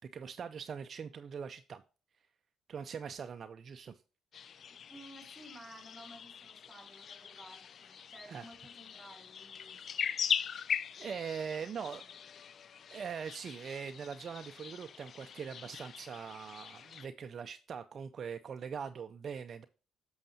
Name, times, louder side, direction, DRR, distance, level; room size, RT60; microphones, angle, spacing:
voice 1, 0.1-1.8 2.7-4.0 8.3-8.5 11.0-12.0 12.9-19.6, right 6 dB, 50° right, 0.5 m, -42 dB
sound 1, 4.3-17.1, left 7 dB, 55° left, 0.3 m, -41 dB
voice 2, 4.7-9.9 11.5-12.1, right 1 dB, 5° right, 2.3 m, -55 dB
8.8 x 6.3 x 2.7 m
supercardioid pair, 65°, 0 cm